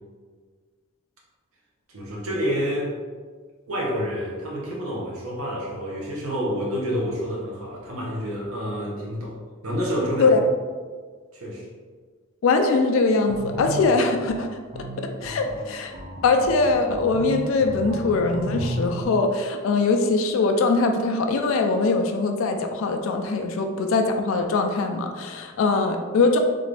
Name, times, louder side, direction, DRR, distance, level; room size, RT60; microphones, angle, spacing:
voice 1, 1.9-2.9 3.7-9.3 9.6-10.4 11.3-11.7, equal, 80° right, -3 dB, 0.9 m, -28 dB
voice 2, 12.4-14.5 14.8-15.9 16.2-26.4, left 3 dB, 70° left, 5 dB, 0.3 m, -22 dB
sound 1, 13.3-19.0, right 1 dB, 40° right, 0.6 m, -33 dB
3.7 x 2.5 x 3.2 m, 1.5 s
head